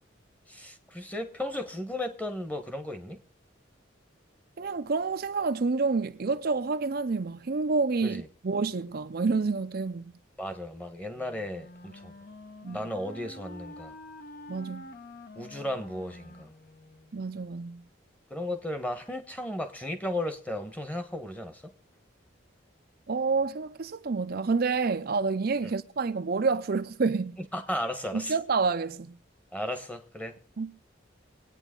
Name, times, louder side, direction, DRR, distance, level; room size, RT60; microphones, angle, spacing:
voice 1, 0.5-3.2 8.0-8.3 10.4-12.1 12.7-14.0 15.3-16.5 18.3-21.7 25.6-25.7 27.5-28.3 29.5-30.4, left 1 dB, 10° left, 1.2 m, -35 dB
voice 2, 4.6-10.1 12.6-12.8 14.5-14.9 17.1-17.8 23.1-27.4 28.1-29.2 30.6-30.7, right 4 dB, 50° right, 0.5 m, -28 dB
Wind instrument woodwind instrument, 11.1-17.2, left 1 dB, 50° left, 1.1 m, -47 dB
24.0 x 9.1 x 3.8 m
head